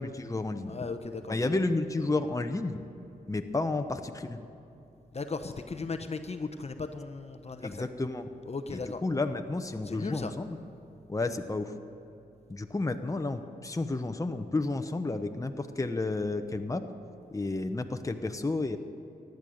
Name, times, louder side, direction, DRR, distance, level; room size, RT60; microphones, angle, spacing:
voice 1, 0.0-0.7 1.3-2.8 3.3-4.4 7.6-8.3 8.7-10.6 11.1-11.7 12.5-16.8 17.3-18.8, left 2 dB, 20° left, 7 dB, 0.9 m, -31 dB
voice 2, 0.7-1.6 5.1-7.9 8.5-9.0 9.8-10.3, left 4 dB, 45° left, 8 dB, 0.9 m, -37 dB
15.5 x 11.0 x 6.4 m, 2.9 s
cardioid pair, 60°, 15 cm